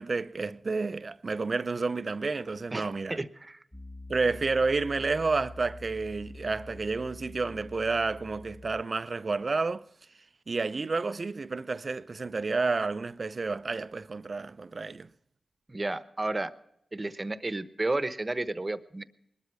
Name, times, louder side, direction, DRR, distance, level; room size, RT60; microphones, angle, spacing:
voice 1, 0.0-3.2 4.1-9.8 10.5-15.1, right 4 dB, 55° right, 0.6 m, -30 dB
voice 2, 2.7-3.6 15.7-16.5 16.9-19.0, right 2 dB, 30° right, 1.1 m, -32 dB
Piano, 3.7-8.8, left 2 dB, 10° left, 0.9 m, -46 dB
20.5 x 12.5 x 4.8 m
cardioid pair, 45°, 0 cm